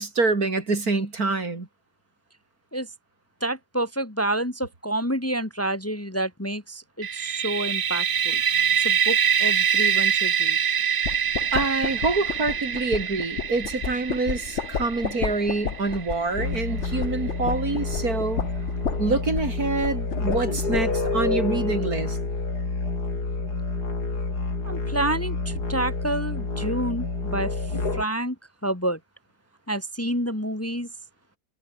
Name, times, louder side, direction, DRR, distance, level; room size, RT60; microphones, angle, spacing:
voice 1, 0.0-1.7 11.5-18.4 19.0-22.2, right 3 dB, 65° right, 4.2 m, -26 dB
voice 2, 3.4-8.4 8.8-10.6 24.7-28.4 28.6-29.0 29.7-30.9, right 1 dB, 10° left, 1.8 m, -29 dB
sound 1, 7.0-16.7, right 8 dB, 45° right, 0.8 m, -25 dB
sound 2, 11.0-21.1, left 6 dB, 50° left, 1.5 m, -33 dB
sound 3, 16.4-28.0, left 3 dB, 85° left, 5.0 m, -28 dB
omnidirectional pair, 1.7 m